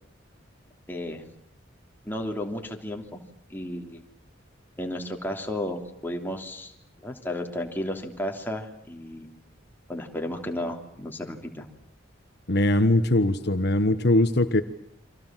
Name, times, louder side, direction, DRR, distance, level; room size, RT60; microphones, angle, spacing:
voice 1, 0.9-1.2 2.1-3.2 3.5-4.0 4.8-6.7 7.0-9.3 9.9-11.6, left 1 dB, 10° left, 2 dB, 3.2 m, -33 dB
voice 2, 12.5-14.6, left 1 dB, 60° left, 9 dB, 1.4 m, -21 dB
30.0 x 25.0 x 7.6 m, 0.69 s
head